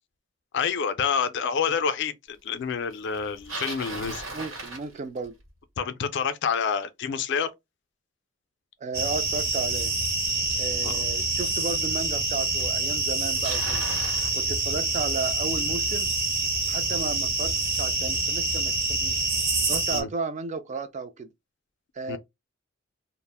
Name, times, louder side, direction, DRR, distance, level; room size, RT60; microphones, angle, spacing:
voice 1, 0.5-4.2 5.8-7.5 10.8-11.0 19.9-20.1 22.1-22.2, left 6 dB, 60° left, 0.4 m, -28 dB
Bicycle, 3.1-5.5 10.5-10.6 11.5-11.6 12.6-12.7 12.9-14.3, right 2 dB, 75° right, 1.0 m, -37 dB
voice 2, 4.3-5.4 8.8-9.9 10.6-13.9 14.3-16.1 16.7-18.7 19.0-19.2 19.7-21.3 22.0-22.2, right 4 dB, 35° right, 0.3 m, -33 dB
sound 1, 8.9-20.0, right 3 dB, 50° right, 0.8 m, -26 dB
2.3 x 2.0 x 3.3 m
head